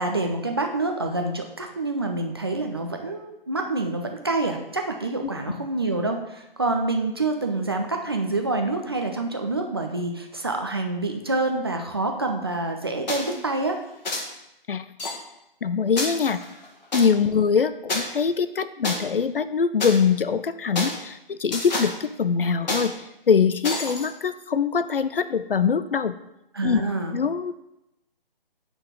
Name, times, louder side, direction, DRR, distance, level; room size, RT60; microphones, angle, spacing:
voice 1, 0.0-13.8 26.5-27.2, right 2 dB, 25° right, 3 dB, 0.4 m, -27 dB
sound 1, 13.1-13.4 14.0-14.2 15.0-15.1 16.0-17.1 17.9-18.0 18.8-18.9 19.8-20.0 20.8-21.0 21.5-21.9 22.7-22.9 23.6-24.0, left 2 dB, 50° left, 1.3 m, -28 dB
voice 2, 15.6-16.4 16.9-22.9 23.3-26.1 26.6-26.8 27.1-27.5, left 6 dB, 70° left, 13 dB, 0.5 m, -23 dB
8.5 x 4.0 x 3.6 m, 0.87 s
figure-of-eight pair, 145°, 29 cm